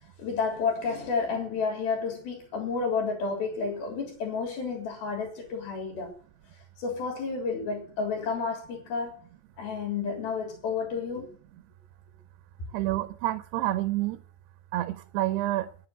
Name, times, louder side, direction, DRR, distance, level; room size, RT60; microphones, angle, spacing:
voice 1, 0.2-6.1 6.5-9.1 9.6-11.3, left 5 dB, 60° left, 5.1 m, -31 dB
voice 2, 12.7-14.2 14.7-15.7, right 15 dB, 75° right, 2.8 m, -28 dB
11.0 x 9.7 x 7.9 m
omnidirectional pair, 5.1 m